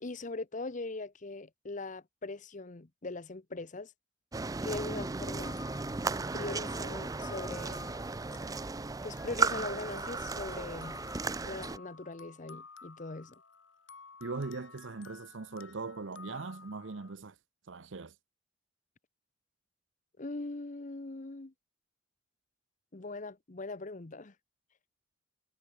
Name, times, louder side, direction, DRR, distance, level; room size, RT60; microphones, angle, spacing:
voice 1, 0.0-3.9 4.6-5.6 6.3-7.9 9.0-11.0 11.4-13.3 20.2-21.5 22.9-24.3, left 3 dB, 40° left, 0.9 m, -40 dB
sound 1, 4.3-11.8, right 3 dB, 20° right, 0.5 m, -35 dB
sound 2, 5.4-17.1, left 5 dB, 80° left, 6.9 m, -52 dB
voice 2, 14.2-17.3 17.7-18.1, right 3 dB, 80° right, 0.8 m, -40 dB
head